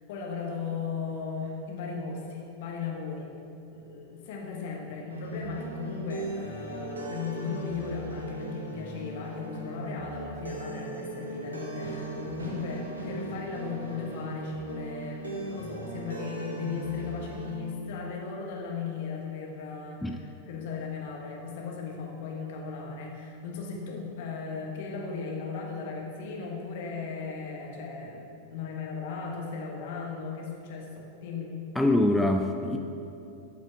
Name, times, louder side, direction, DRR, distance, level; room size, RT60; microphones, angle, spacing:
voice 1, 0.1-3.3 3.7-31.5, left 5 dB, 50° left, 0 dB, 1.2 m, -36 dB
sound 1, 5.1-17.5, right 2 dB, 75° right, 0.9 m, -38 dB
voice 2, 31.8-32.8, left 1 dB, 5° left, 3 dB, 0.3 m, -24 dB
12.5 x 4.9 x 2.8 m, 2.8 s
figure-of-eight pair, 90°, 0 cm